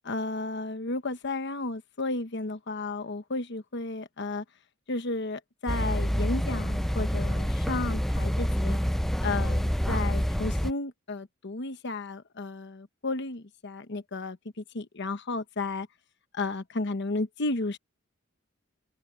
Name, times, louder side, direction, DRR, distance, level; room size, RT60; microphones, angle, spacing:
voice 1, 0.0-4.4 4.9-8.8 9.2-15.9 16.3-17.8, left 2 dB, 60° left, 1.0 m, -33 dB
sound 1, 5.7-10.7, equal, ahead, 0.4 m, -27 dB
open air
head